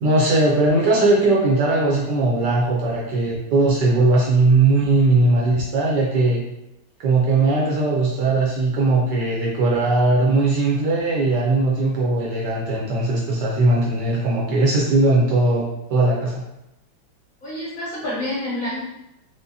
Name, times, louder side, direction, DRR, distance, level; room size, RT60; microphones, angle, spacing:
voice 1, 0.0-6.4 7.0-16.4, right 2 dB, 65° right, -4 dB, 1.1 m, -19 dB
voice 2, 17.4-18.8, left 1 dB, 65° left, -8 dB, 0.9 m, -28 dB
4.8 x 2.1 x 2.7 m, 0.89 s
omnidirectional pair, 2.3 m